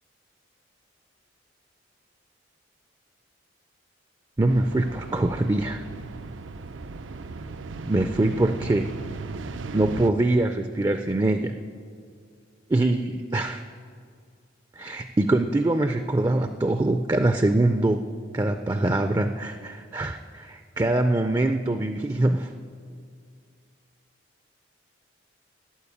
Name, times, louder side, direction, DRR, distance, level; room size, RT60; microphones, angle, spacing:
voice 1, 4.4-5.8 7.8-9.0 9.7-11.6 12.7-13.6 14.8-18.0 18.3-22.5, right 2 dB, 20° right, 8 dB, 0.4 m, -23 dB
sound 1, 4.5-10.1, right 3 dB, 85° right, 0.5 m, -37 dB
12.0 x 9.1 x 8.3 m, 2.2 s
head